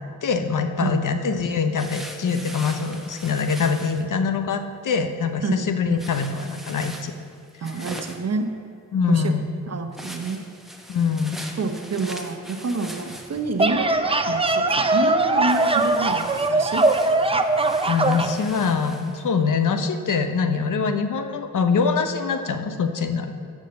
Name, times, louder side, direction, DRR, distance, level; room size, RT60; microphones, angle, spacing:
voice 1, 0.2-7.1 8.9-9.5 10.9-11.4 17.9-23.3, left 5 dB, 65° left, 8 dB, 0.8 m, -24 dB
sound 1, 1.7-4.0 6.0-8.3 9.9-13.6 15.4-19.2, equal, ahead, 1.1 m, -41 dB
voice 2, 7.6-8.5 9.1-9.3 9.7-10.4 11.6-16.8, right 3 dB, 50° right, 6 dB, 0.9 m, -28 dB
sound 2, 13.4-18.4, right 2 dB, 15° right, 0.6 m, -21 dB
7.4 x 6.5 x 7.8 m, 2.5 s
cardioid pair, 55°, 33 cm